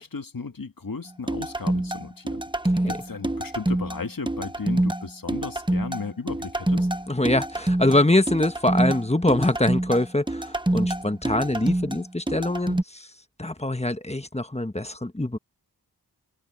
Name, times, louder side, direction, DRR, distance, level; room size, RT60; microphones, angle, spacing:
voice 1, 0.0-2.4 2.9-6.9, left 4 dB, 55° left, 1.7 m, -35 dB
sound 1, 1.3-12.8, right 1 dB, 10° right, 1.0 m, -26 dB
voice 2, 7.1-13.1 13.4-15.4, left 1 dB, 15° left, 1.3 m, -24 dB
wide cardioid pair, 40°, 40 cm